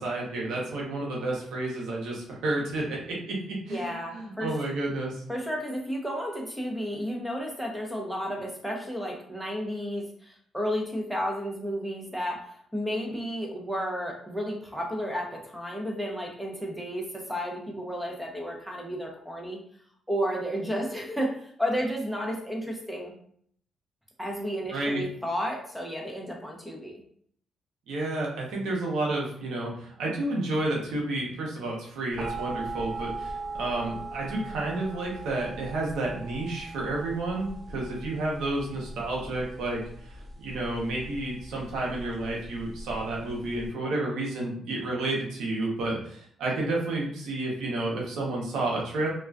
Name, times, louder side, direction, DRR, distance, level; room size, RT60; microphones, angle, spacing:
voice 1, 0.0-5.2 24.7-25.0 27.9-49.1, right 2 dB, 85° right, -3 dB, 0.8 m, -31 dB
voice 2, 3.7-4.5 5.3-19.6 20.1-23.1 24.2-27.0, equal, ahead, 0 dB, 0.7 m, -32 dB
sound 1, 32.2-43.7, right 2 dB, 30° right, 1.0 m, -39 dB
2.3 x 2.3 x 2.3 m, 0.62 s
cardioid pair, 85°, 0 cm